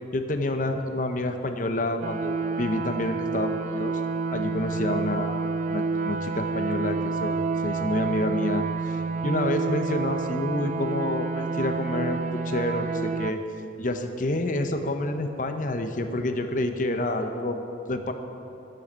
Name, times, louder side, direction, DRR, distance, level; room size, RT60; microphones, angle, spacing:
voice 1, 0.1-3.9 4.3-5.4 5.7-9.0 9.2-13.4 13.8-17.6 17.9-18.1, left 1 dB, 45° left, 6 dB, 0.8 m, -28 dB
sound 1, 2.0-13.3, right 4 dB, 45° right, 0.3 m, -29 dB
13.0 x 8.0 x 7.4 m, 2.9 s
head